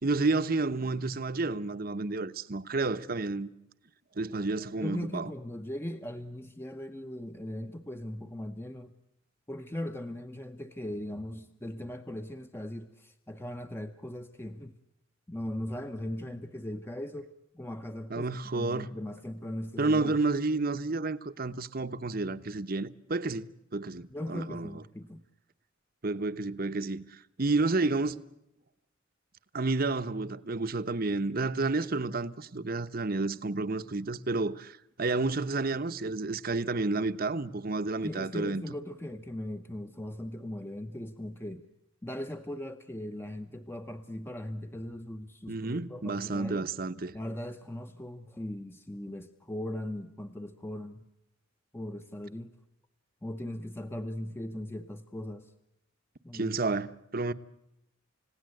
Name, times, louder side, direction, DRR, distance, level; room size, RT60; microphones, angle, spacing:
voice 1, 0.0-3.5 4.2-5.3 18.1-18.9 19.8-23.5 23.7-24.8 26.0-28.2 29.5-38.6 45.5-47.1 56.3-57.3, right 3 dB, 45° right, 1.0 m, -30 dB
voice 2, 4.7-8.9 9.5-14.7 15.3-20.2 24.1-25.2 38.0-41.6 42.0-46.7 47.1-51.0 51.7-52.5 53.2-55.5 56.2-56.6, left 1 dB, 10° left, 0.9 m, -39 dB
29.5 x 17.0 x 7.8 m
head